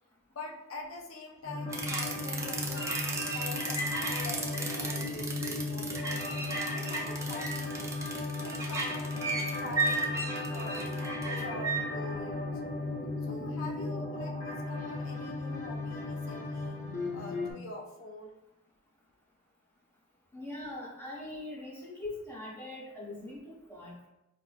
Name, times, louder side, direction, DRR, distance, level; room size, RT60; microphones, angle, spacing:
voice 1, 0.4-2.9 3.3-6.2 6.7-7.9 8.4-10.8 11.2-12.6 13.2-16.8 17.1-18.4, left 3 dB, 75° left, 2 dB, 0.4 m, -45 dB
sound 1, 1.4-17.5, left 2 dB, 45° left, 0.8 m, -36 dB
sound 2, 1.7-11.8, right 3 dB, 15° right, 0.4 m, -34 dB
voice 2, 20.3-24.1, left 2 dB, 10° left, -5 dB, 1.0 m, -42 dB
4.6 x 2.5 x 2.4 m, 0.88 s
head